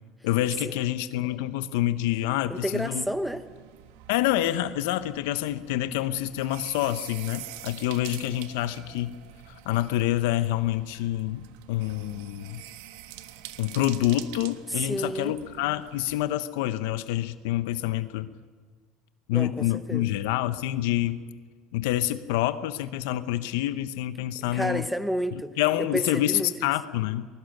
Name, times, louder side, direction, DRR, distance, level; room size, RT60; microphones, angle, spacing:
voice 1, 0.2-3.0 4.1-9.2 9.5-11.4 11.7-12.6 13.6-18.3 19.3-21.2 21.7-24.8 25.6-27.3, left 14 dB, 90° left, 1.0 m, -27 dB
voice 2, 2.5-3.4 14.7-15.3 19.3-20.1 24.4-25.5 25.8-26.7, equal, ahead, 0.9 m, -31 dB
sound 1, 2.8-16.3, right 12 dB, 85° right, 1.4 m, -46 dB
24.0 x 21.0 x 6.7 m
cardioid pair, 140°, 0 cm